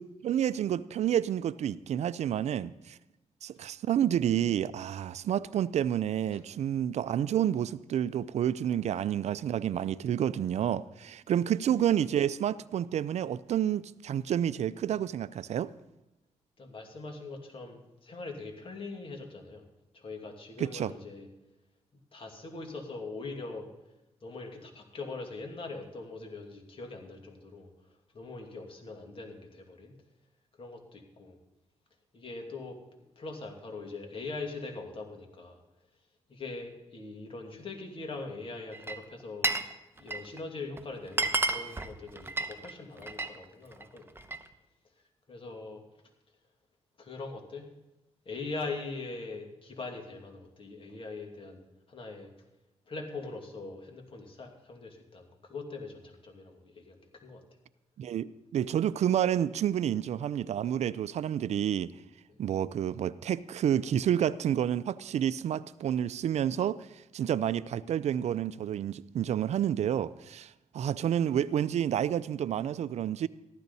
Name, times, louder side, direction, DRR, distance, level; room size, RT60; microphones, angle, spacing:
voice 1, 0.0-3.0 3.4-15.7 20.6-20.9 58.0-61.9 62.4-73.3, right 10 dB, 70° right, 0.4 m, -29 dB
voice 2, 16.6-19.7 19.9-21.3 22.1-23.7 24.2-29.9 30.6-31.4 32.1-32.8 33.2-35.6 36.3-39.5 39.9-44.1 45.3-45.8 47.0-47.7 48.3-52.3 52.9-57.4 62.3-62.4, left 3 dB, 50° left, 2.4 m, -42 dB
Glass, 38.7-39.7 40.0-40.4 40.8-40.9 41.1-43.4 43.7-44.5, right 3 dB, 20° right, 0.9 m, -31 dB
14.5 x 12.0 x 4.1 m
cardioid pair, 75°, 12 cm